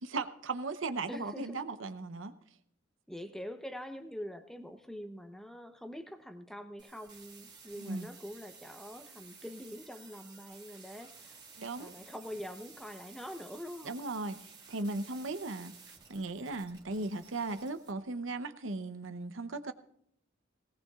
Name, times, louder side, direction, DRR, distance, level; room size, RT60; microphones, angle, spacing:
voice 1, 0.0-2.3 7.8-8.1 11.6-11.9 13.8-19.7, right 3 dB, 70° right, 10 dB, 0.8 m, -37 dB
voice 2, 1.1-1.6 3.1-11.4 11.8-13.9, equal, ahead, 7 dB, 0.8 m, -44 dB
sound 1, 6.8-17.9, right 5 dB, 25° right, 1.9 m, -54 dB
19.0 x 18.0 x 2.4 m, 0.71 s
head